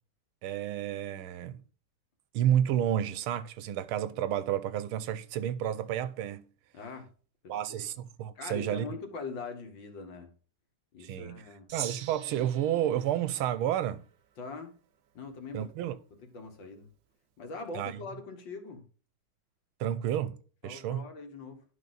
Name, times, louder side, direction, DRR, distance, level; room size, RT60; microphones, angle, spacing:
voice 1, 0.4-1.6 2.3-6.4 7.5-8.9 11.0-11.4 11.7-14.0 15.5-16.0 17.7-18.0 19.8-20.4 20.6-21.1, right 11 dB, 85° right, 1.5 m, -30 dB
voice 2, 6.7-7.1 7.4-7.9 8.4-10.3 10.9-11.7 14.4-14.7 15.1-16.9 17.4-18.8 20.6-21.6, left 4 dB, 60° left, 2.2 m, -42 dB
Gong, 11.7-14.3, right 9 dB, 70° right, 0.8 m, -44 dB
11.0 x 5.3 x 4.0 m
omnidirectional pair, 2.4 m